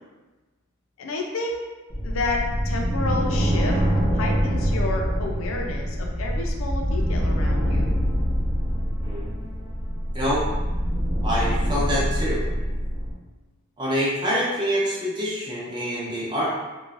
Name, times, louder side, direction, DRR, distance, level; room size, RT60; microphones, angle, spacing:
voice 1, 1.0-1.6 2.0-3.8 4.2-7.9, left 2 dB, 70° left, 1 dB, 0.4 m, -30 dB
sound 1, 1.9-13.1, equal, 30° left, 0.7 m, -25 dB
sound 2, 3.1-10.6, equal, 40° right, 0.3 m, -47 dB
sound 3, 6.9-12.6, right 1 dB, 70° right, 0.8 m, -43 dB
voice 2, 10.1-10.5 11.2-12.4 13.8-16.5, equal, 20° right, -7 dB, 0.8 m, -26 dB
3.0 x 2.2 x 2.4 m, 1.2 s
head